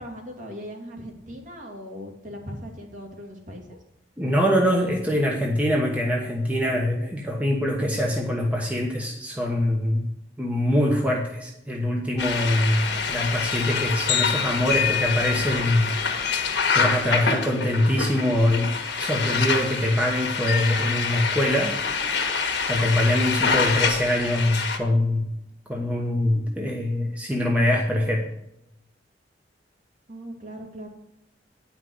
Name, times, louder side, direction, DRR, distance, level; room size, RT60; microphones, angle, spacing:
voice 1, 0.0-3.8 30.1-30.9, equal, 45° right, 0 dB, 2.4 m, -39 dB
voice 2, 4.2-10.0 10.4-15.9 16.2-16.3 16.7-18.7 19.0-21.7 22.7-25.3 25.7-28.2, left 1 dB, 10° right, 0 dB, 1.1 m, -23 dB
sound 1, 12.2-24.8, left 5 dB, 70° left, 1.7 m, -26 dB
9.7 x 5.9 x 7.8 m, 0.84 s
head